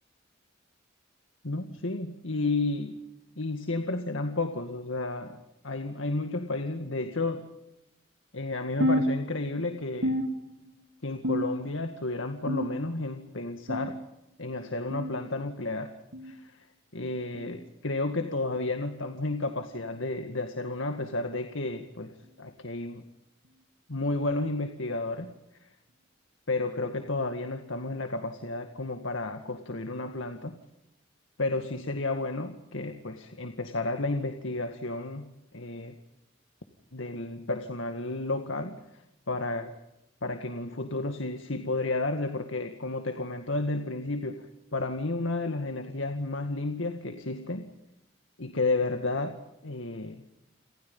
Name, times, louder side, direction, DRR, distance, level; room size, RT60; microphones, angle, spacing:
voice 1, 1.4-3.0 3.4-5.4 5.6-7.5 8.3-10.2 11.0-14.0 14.4-15.9 16.2-16.6 16.9-23.0 23.9-25.3 26.5-30.6 31.4-35.9 36.9-38.8 39.3-39.7 40.2-47.7 48.4-50.2, left 2 dB, 75° left, 6 dB, 2.0 m, -32 dB
sound 1, 8.8-9.7 10.0-10.8 11.2-11.9 12.5-13.1 13.7-14.1 14.9-15.1 16.1-16.3 17.3-17.6 18.6-18.8 19.8-20.0 21.0-21.2 22.2-22.3 23.5-23.6, equal, 80° right, 2.6 m, -31 dB
29.5 x 27.0 x 5.5 m, 0.87 s
head